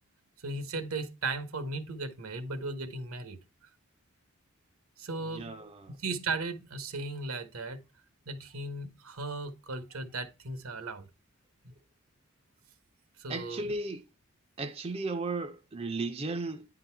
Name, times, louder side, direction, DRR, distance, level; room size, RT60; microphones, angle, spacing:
voice 1, 0.4-3.4 5.0-5.5 6.0-7.8 8.3-11.1 13.2-13.7, right 3 dB, 75° right, 1.0 m, -36 dB
voice 2, 5.2-5.9 13.3-14.0 14.6-16.7, right 3 dB, 25° right, 0.5 m, -35 dB
9.8 x 3.9 x 4.5 m
head